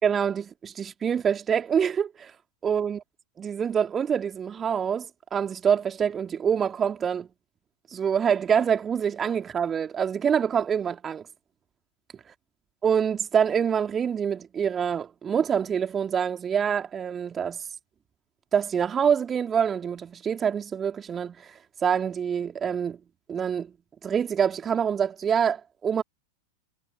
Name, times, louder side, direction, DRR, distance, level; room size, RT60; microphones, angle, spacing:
voice 1, 0.0-2.3 2.6-3.0 3.4-7.3 7.9-11.3 12.8-17.6 18.5-21.5 21.8-23.0 23.3-23.7 24.0-26.0, right 7 dB, 20° right, 3.6 m, -26 dB
figure-of-eight pair, 90°, 0 cm